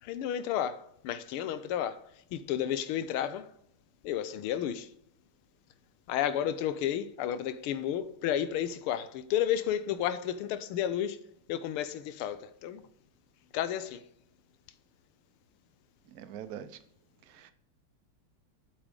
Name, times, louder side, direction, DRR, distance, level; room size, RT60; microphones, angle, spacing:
voice 1, 0.0-2.0 2.3-3.5 4.0-4.9 6.1-11.2 11.5-12.8 13.5-14.0, left 10 dB, 85° left, 1.6 m, -32 dB
voice 2, 16.1-16.7 17.3-17.5, right 9 dB, 65° right, 0.9 m, -43 dB
8.3 x 6.1 x 5.0 m
omnidirectional pair, 2.4 m